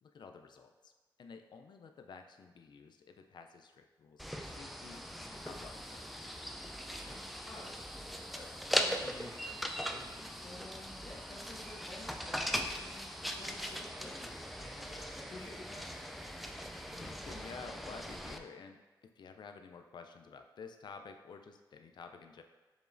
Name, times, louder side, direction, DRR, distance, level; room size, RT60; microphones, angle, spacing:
voice 1, 0.0-0.9 1.2-6.3 16.8-22.4, left 5 dB, 65° left, 6 dB, 0.4 m, -52 dB
sound 1, 4.2-18.4, equal, ahead, 0.4 m, -40 dB
voice 2, 6.9-16.0, left 2 dB, 45° left, -5 dB, 1.4 m, -52 dB
6.9 x 3.0 x 2.6 m, 1.2 s
cardioid pair, 60°, 8 cm